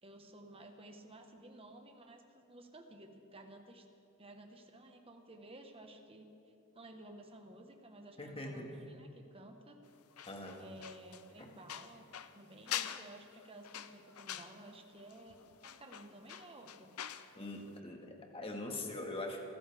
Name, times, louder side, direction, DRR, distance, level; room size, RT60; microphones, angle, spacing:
voice 1, 0.0-3.9 4.2-6.3 6.7-9.8 10.6-12.1 12.3-16.9, right 1 dB, 25° right, 4 dB, 1.4 m, -54 dB
voice 2, 8.2-8.7 10.3-10.6 17.4-19.4, left 2 dB, 25° left, 1 dB, 1.8 m, -42 dB
sound 1, 10.1-17.3 17.6-17.8, left 10 dB, 85° left, 0.6 m, -45 dB
27.0 x 14.0 x 3.6 m, 2.8 s
head